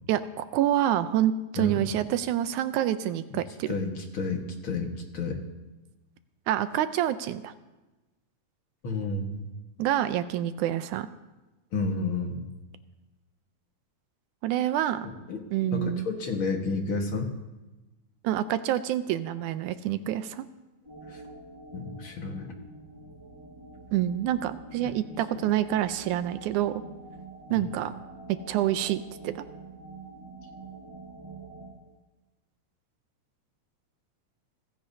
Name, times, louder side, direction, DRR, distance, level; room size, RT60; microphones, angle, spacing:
voice 1, 0.1-3.7 6.5-7.5 9.8-11.1 14.4-15.1 15.5-16.1 18.2-20.4 23.9-26.8 27.5-27.9 28.3-29.4, right 12 dB, 85° right, 12 dB, 2.1 m, -27 dB
voice 2, 1.6-1.9 3.7-5.4 8.8-9.5 11.7-12.5 15.3-15.4 15.7-17.3 21.1-21.2 21.7-22.5 24.8-24.9 27.5-27.7, left 3 dB, 50° left, 2 dB, 2.1 m, -31 dB
sound 1, 20.9-31.7, right 3 dB, 10° right, 4.6 m, -46 dB
30.0 x 15.5 x 2.8 m, 1.1 s
omnidirectional pair, 3.4 m